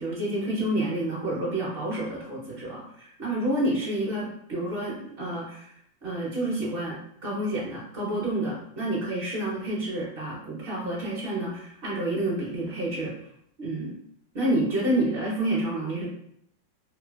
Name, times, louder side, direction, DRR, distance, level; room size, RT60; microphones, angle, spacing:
voice 1, 0.0-5.7 6.0-7.0 7.2-13.1 13.6-13.9 14.3-16.1, right 1 dB, 45° right, -6 dB, 0.7 m, -29 dB
3.1 x 2.2 x 2.2 m, 0.70 s
omnidirectional pair, 2.0 m